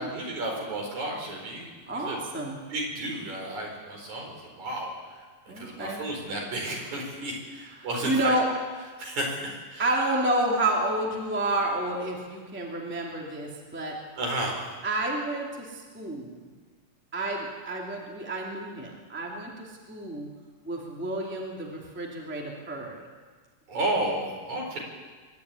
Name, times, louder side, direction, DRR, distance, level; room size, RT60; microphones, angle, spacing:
voice 1, 0.0-2.2 2.7-5.2 5.6-8.4 9.0-9.8 14.2-14.7 23.7-24.8, right 1 dB, 60° right, -1 dB, 5.9 m, -32 dB
voice 2, 1.9-2.6 5.5-6.0 7.8-8.5 9.8-14.0 14.8-16.5 17.1-20.3 20.7-23.0, right 1 dB, 5° right, -2 dB, 2.5 m, -30 dB
24.0 x 11.5 x 9.7 m, 1.4 s
omnidirectional pair, 3.7 m